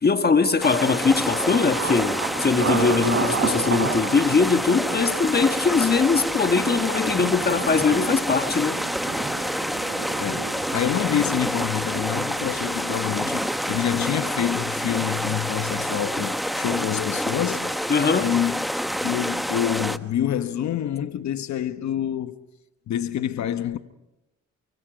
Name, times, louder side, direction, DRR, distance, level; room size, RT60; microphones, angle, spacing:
voice 1, 0.0-8.8 17.9-18.3, left 4 dB, 30° left, 1.5 m, -21 dB
sound 1, 0.6-20.0, equal, ahead, 1.1 m, -28 dB
Thunder, 1.0-16.8 17.0-17.7 18.1-18.3, right 4 dB, 45° right, 4.8 m, -33 dB
voice 2, 10.2-17.8 18.2-18.6 19.0-22.4 22.9-23.8, left 10 dB, 65° left, 1.1 m, -27 dB
29.0 x 24.5 x 5.1 m
cardioid pair, 90°, 30 cm